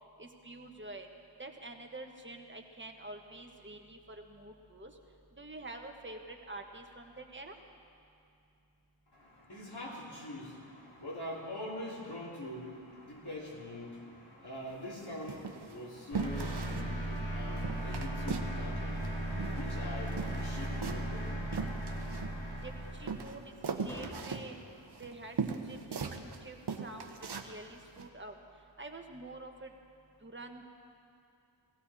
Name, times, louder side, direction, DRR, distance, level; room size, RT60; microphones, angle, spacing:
voice 1, 0.2-1.1 1.4-4.9 5.4-7.5 22.6-24.6 25.0-25.4 25.6-27.1 27.4-28.4 28.8-29.7 30.2-30.7, right 2 dB, 25° right, 3 dB, 1.3 m, -47 dB
voice 2, 9.1-22.7, left 1 dB, 55° left, -4 dB, 3.1 m, -44 dB
sound 1, 14.7-14.9 15.3-15.8 16.1-16.9 17.2-17.3 17.6-18.6 18.8-19.8 20.1-22.6 23.1-26.4 26.7-27.5 28.0-28.1, right 5 dB, 55° right, 1.0 m, -39 dB
sound 2, 16.1-23.3, right 1 dB, 75° left, 3.1 m, -37 dB
sound 3, 23.8-24.9, equal, 5° left, 2.0 m, -51 dB
17.5 x 16.0 x 4.2 m, 2.5 s
wide cardioid pair, 75°, 48 cm